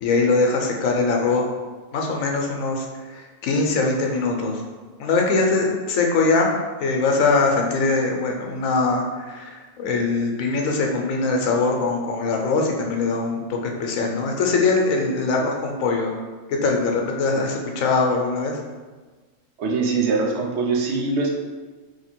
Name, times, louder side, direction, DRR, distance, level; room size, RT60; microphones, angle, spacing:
voice 1, 0.0-1.4 1.9-4.6 5.0-6.5 6.8-16.2 16.5-18.6, left 3 dB, 90° left, 1 dB, 1.1 m, -22 dB
voice 2, 19.6-21.3, right 4 dB, 65° right, -1 dB, 0.9 m, -22 dB
3.2 x 2.8 x 4.4 m, 1.3 s
omnidirectional pair, 1.4 m